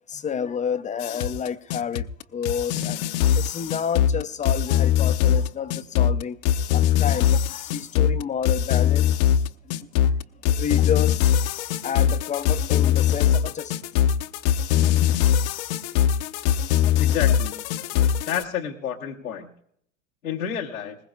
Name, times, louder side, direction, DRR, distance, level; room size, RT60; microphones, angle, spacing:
voice 1, 0.1-2.1 2.3-3.0 3.3-6.4 6.7-9.2 10.0-10.1 10.5-11.3 11.8-13.7, left 7 dB, 20° left, 0.5 m, -30 dB
sound 1, 1.0-18.4, left 10 dB, 55° left, 0.8 m, -21 dB
voice 2, 17.0-17.6 18.3-19.5 20.2-21.0, left 8 dB, 90° left, 1.2 m, -29 dB
20.5 x 20.0 x 2.4 m
hypercardioid pair, 90°, 41 cm